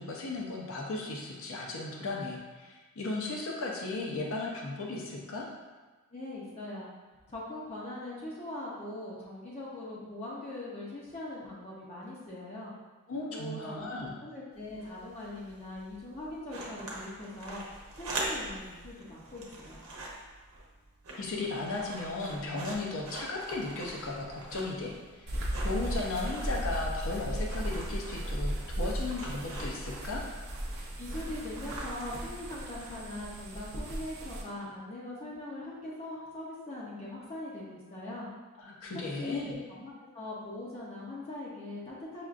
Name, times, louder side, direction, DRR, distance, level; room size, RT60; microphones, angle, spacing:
voice 1, 0.0-5.5 13.1-14.1 21.2-25.3 25.6-30.2 38.6-39.6, left 2 dB, 65° left, -1 dB, 0.6 m, -36 dB
voice 2, 6.1-6.9 7.3-12.7 13.3-17.6 17.9-19.8 31.0-38.3 39.2-42.3, left 1 dB, 30° left, -6 dB, 0.6 m, -41 dB
sound 1, 14.5-33.4, right 2 dB, 80° right, 0.8 m, -44 dB
sound 2, 25.3-34.4, equal, 50° right, 0.6 m, -36 dB
5.8 x 2.4 x 2.4 m, 1.3 s
head